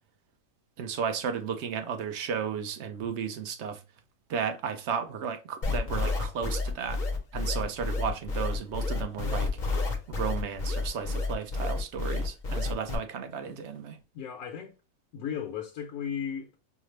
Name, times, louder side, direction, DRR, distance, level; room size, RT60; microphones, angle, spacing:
voice 1, 0.8-3.8 4.3-7.0 7.3-9.5 10.1-14.0, right 7 dB, 60° right, 0.8 m, -34 dB
sound 1, 5.6-13.0, left 3 dB, 40° left, 0.7 m, -30 dB
voice 2, 14.1-14.7 15.1-16.6, left 8 dB, 70° left, 1.2 m, -35 dB
5.7 x 2.0 x 3.1 m
omnidirectional pair, 1.6 m